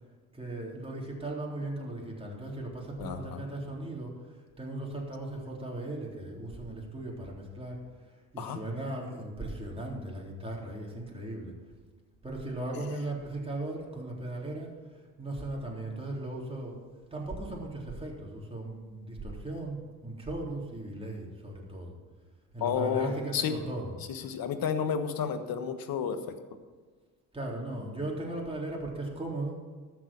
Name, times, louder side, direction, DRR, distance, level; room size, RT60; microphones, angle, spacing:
voice 1, 0.3-7.8 8.3-11.5 12.2-16.8 17.1-22.0 22.5-23.9 27.3-29.6, right 2 dB, 15° right, -2 dB, 3.7 m, -37 dB
voice 2, 3.0-3.4 8.4-8.6 12.7-12.9 22.6-23.5 24.1-26.3, left 7 dB, 50° left, 9 dB, 1.4 m, -31 dB
14.0 x 6.2 x 7.2 m, 1.5 s
hypercardioid pair, 65°, 44 cm